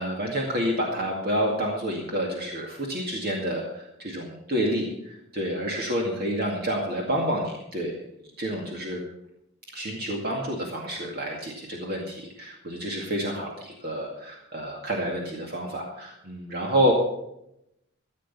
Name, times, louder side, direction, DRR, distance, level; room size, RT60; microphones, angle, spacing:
voice 1, 0.0-8.0 8.4-9.0 9.7-16.9, equal, 50° right, -1 dB, 2.2 m, -29 dB
15.0 x 8.1 x 6.9 m, 0.82 s
head